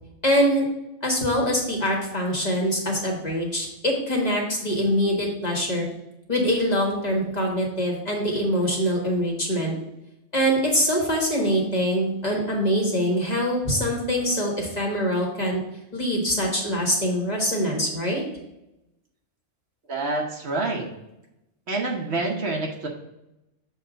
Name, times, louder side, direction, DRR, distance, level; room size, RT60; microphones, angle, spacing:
voice 1, 0.2-0.6 1.0-5.9 6.3-9.7 10.3-15.6 15.9-18.2, equal, 35° left, -2 dB, 1.6 m, -24 dB
voice 2, 19.9-20.9 21.7-22.9, right 2 dB, 60° right, 0 dB, 1.3 m, -27 dB
6.8 x 3.7 x 5.0 m, 0.90 s
omnidirectional pair, 1.3 m